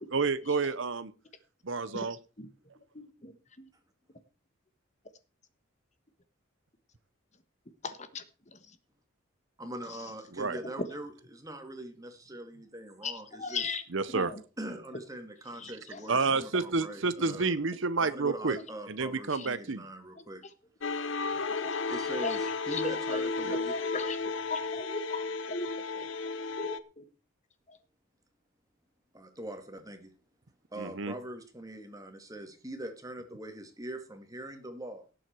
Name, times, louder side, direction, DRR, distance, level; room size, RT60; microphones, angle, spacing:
voice 1, 0.1-1.1 1.6-2.2 10.4-10.6 13.9-14.3 16.1-18.6 18.9-19.8 23.4-23.6 30.8-31.1, right 4 dB, 70° right, 14 dB, 0.9 m, -29 dB
voice 2, 2.9-3.7 7.8-8.2 8.5-8.6 9.9-10.0 13.0-13.8 14.1-14.4 15.6-16.1 18.5-18.6 19.3-19.5 20.2-20.5 21.4-21.8 22.2-24.2 24.5-25.7 26.6-27.0 27.7-27.8, left 3 dB, 35° left, 10 dB, 1.3 m, -38 dB
voice 3, 9.6-13.7 14.6-17.6 18.0-20.4 21.9-23.8 29.1-30.1 30.7-35.0, right 1 dB, 15° right, 6 dB, 2.2 m, -42 dB
sound 1, 20.8-26.8, left 4 dB, 70° left, 1.0 m, -33 dB
17.5 x 7.8 x 4.6 m, 0.35 s
head